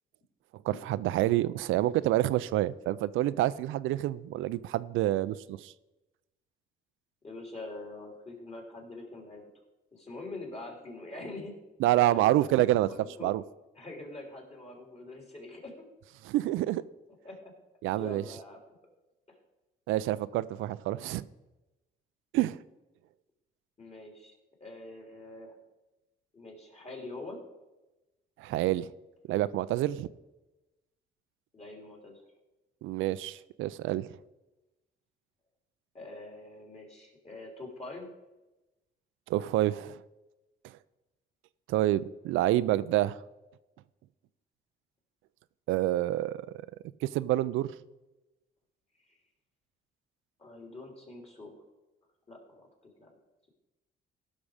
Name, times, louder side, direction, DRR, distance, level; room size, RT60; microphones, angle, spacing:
voice 1, 0.6-5.7 11.8-12.9 13.2-13.4 16.2-16.8 17.8-18.2 19.9-21.2 22.3-22.6 28.4-28.9 29.3-30.1 32.8-34.1 39.3-40.0 41.7-43.2 45.7-46.5 47.0-47.7, right 15 dB, 90° right, 15 dB, 0.4 m, -27 dB
voice 2, 7.2-9.4 9.9-11.6 11.9-13.3 13.7-15.8 17.2-17.5 18.0-18.6 19.3-19.4 23.8-25.6 26.3-27.4 31.5-32.2 35.9-38.1 49.1-49.2 50.4-51.6 52.3-53.1, left 2 dB, 30° left, 0 dB, 3.3 m, -44 dB
15.5 x 6.1 x 4.9 m, 1.1 s
cardioid pair, 90°, 20 cm